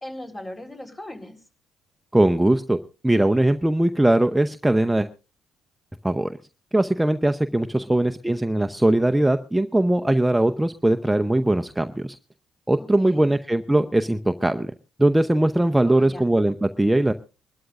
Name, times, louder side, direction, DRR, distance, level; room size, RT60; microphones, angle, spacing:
voice 1, 0.0-1.4 7.5-8.1 12.8-13.3 15.8-16.2, left 1 dB, 25° left, 3 dB, 4.0 m, -39 dB
voice 2, 2.1-2.8 3.0-5.1 6.0-6.4 6.7-12.1 12.7-14.7 15.0-17.1, right 1 dB, 10° right, 7 dB, 0.7 m, -20 dB
24.5 x 12.5 x 2.5 m, 0.32 s
hypercardioid pair, 50°, 0 cm